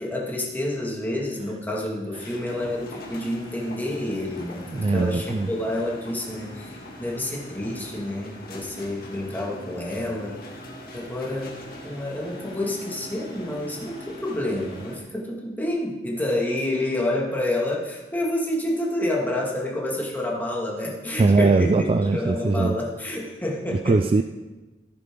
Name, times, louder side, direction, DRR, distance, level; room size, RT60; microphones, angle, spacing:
voice 1, 0.0-10.4 10.9-11.6 11.8-24.0, left 1 dB, 10° left, -3 dB, 2.0 m, -29 dB
sound 1, 2.2-15.0, left 1 dB, 55° left, 2.3 m, -41 dB
voice 2, 4.7-5.5 21.2-22.8 23.7-24.2, right 3 dB, 30° right, 8 dB, 0.3 m, -20 dB
14.5 x 9.5 x 3.8 m, 1.2 s
head